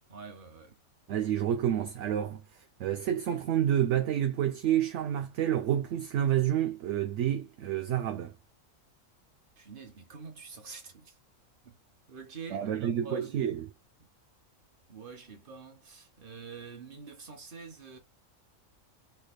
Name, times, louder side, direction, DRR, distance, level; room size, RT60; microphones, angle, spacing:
voice 1, 0.1-0.8 9.6-11.2 11.6-11.8 12.1-13.5 14.0-14.1 14.9-18.0, right 4 dB, 45° right, 1.3 m, -46 dB
voice 2, 1.1-2.4 2.8-8.3 12.5-13.6, right 10 dB, 70° right, 0.8 m, -29 dB
3.4 x 3.2 x 2.2 m
omnidirectional pair, 1.4 m